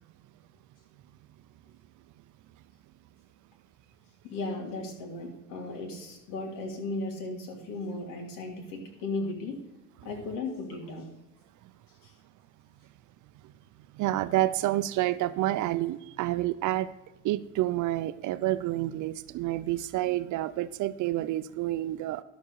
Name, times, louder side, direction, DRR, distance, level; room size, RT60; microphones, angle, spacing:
voice 1, 4.2-9.6 10.0-11.1 12.0-12.1, left 2 dB, 90° left, 0 dB, 2.9 m, -36 dB
voice 2, 13.9-16.9 17.2-22.2, right 15 dB, 65° right, 14 dB, 0.5 m, -29 dB
11.0 x 7.3 x 4.7 m, 1.0 s
cardioid pair, 130°, 32 cm